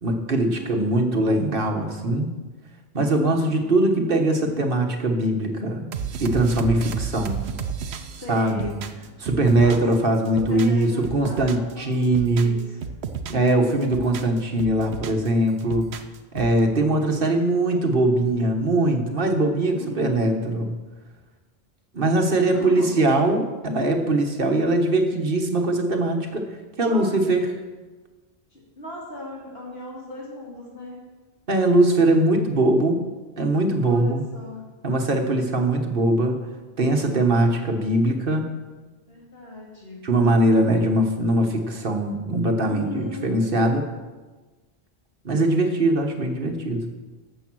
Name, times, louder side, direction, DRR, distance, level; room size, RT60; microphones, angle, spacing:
voice 1, 0.0-2.4 2.9-5.9 6.2-7.4 8.3-8.7 9.2-12.6 13.3-15.9 16.3-20.7 21.9-26.5 26.8-27.5 31.5-33.1 33.4-34.2 34.8-36.4 36.8-38.5 40.0-43.8 45.2-46.8, right 1 dB, 60° right, 4 dB, 1.5 m, -21 dB
voice 2, 0.5-0.9 3.3-3.9 7.8-7.9 8.1-8.8 9.6-12.8 19.7-20.5 22.3-23.1 26.8-27.1 28.5-31.0 33.8-34.6 39.1-40.1 42.6-43.4, left 1 dB, 70° left, -4 dB, 3.8 m, -38 dB
sound 1, 5.9-10.0 10.3-11.7 12.0-13.5 13.8-15.3 15.6-16.6, right 6 dB, 85° right, 1.0 m, -32 dB
13.5 x 7.8 x 6.2 m, 1.3 s
omnidirectional pair, 1.1 m